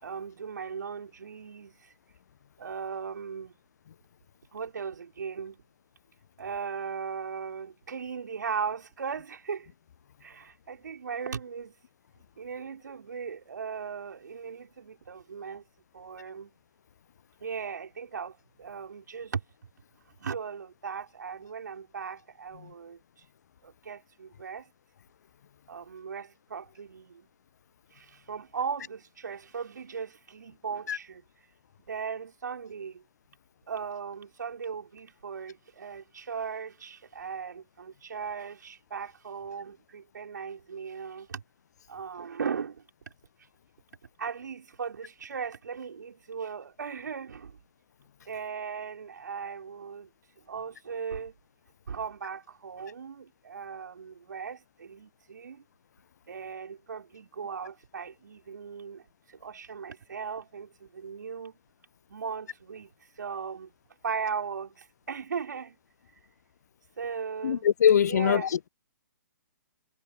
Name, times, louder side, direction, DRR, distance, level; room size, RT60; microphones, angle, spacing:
voice 1, 0.0-1.9 2.6-3.5 4.5-5.6 6.4-9.7 10.2-11.7 12.4-15.6 15.9-16.5 17.4-19.4 20.2-23.0 23.6-24.7 25.7-27.2 27.9-31.2 31.9-33.0 33.7-41.4 41.9-42.8 44.2-47.6 48.3-50.1 50.5-51.3 51.9-55.6 56.3-61.6 62.1-62.9 63.2-63.7 64.0-65.8 67.0-67.7 68.1-68.5, right 6 dB, 65° right, 4.7 m, -38 dB
voice 2, 67.4-68.7, left 8 dB, 55° left, 0.7 m, -22 dB
figure-of-eight pair, 130°, 11 cm